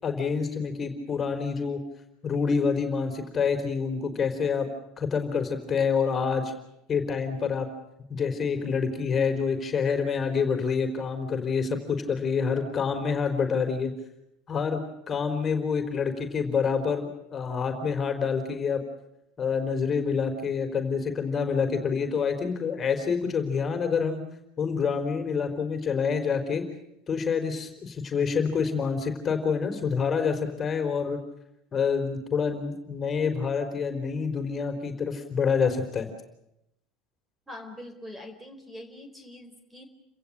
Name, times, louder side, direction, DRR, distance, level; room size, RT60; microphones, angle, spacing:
voice 1, 0.0-1.8 2.2-4.7 5.0-6.5 6.9-7.7 8.1-13.9 14.5-18.8 19.4-24.2 24.6-26.7 27.1-31.2 31.7-36.1, left 6 dB, 30° left, 6 dB, 4.3 m, -27 dB
voice 2, 37.5-39.8, left 1 dB, 10° right, 8 dB, 4.4 m, -43 dB
29.5 x 16.0 x 9.0 m, 0.83 s
supercardioid pair, 105°, 0 cm